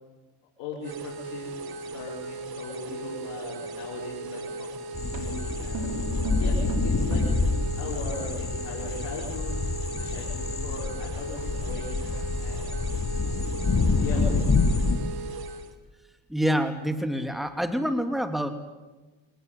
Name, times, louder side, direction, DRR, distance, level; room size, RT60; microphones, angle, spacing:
voice 1, 0.6-5.9 6.4-7.2 7.8-9.5 10.0-12.9 13.9-14.8, left 3 dB, 90° left, -5 dB, 5.7 m, -39 dB
sound 1, 0.8-15.7, right 3 dB, 60° right, 2.7 m, -38 dB
sound 2, 4.2-4.5 5.1-7.5, right 2 dB, 90° right, 4.1 m, -36 dB
sound 3, 4.9-15.0, left 3 dB, 40° left, 6.5 m, -27 dB
voice 2, 16.3-18.5, equal, ahead, 7 dB, 2.8 m, -27 dB
25.5 x 19.5 x 9.6 m, 1.2 s
supercardioid pair, 65°, 41 cm